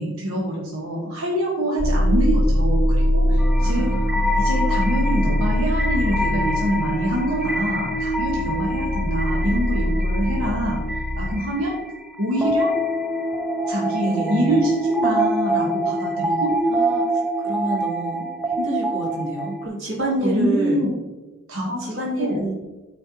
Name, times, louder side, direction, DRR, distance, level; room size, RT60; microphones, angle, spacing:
voice 1, 0.0-10.9 11.2-11.7 12.2-12.7 13.7-16.6 20.0-21.0 21.5-21.9 22.2-22.4, equal, 90° right, -3 dB, 1.3 m, -25 dB
sound 1, 1.8-11.3, equal, 60° left, 1.1 m, -22 dB
sound 2, 3.4-19.7, right 1 dB, 5° right, 0.6 m, -26 dB
voice 2, 3.6-4.4 14.0-14.7 16.7-17.0 17.4-20.8 21.8-22.5, right 1 dB, 60° right, -4 dB, 2.4 m, -28 dB
12.5 x 4.5 x 2.8 m, 1.2 s
head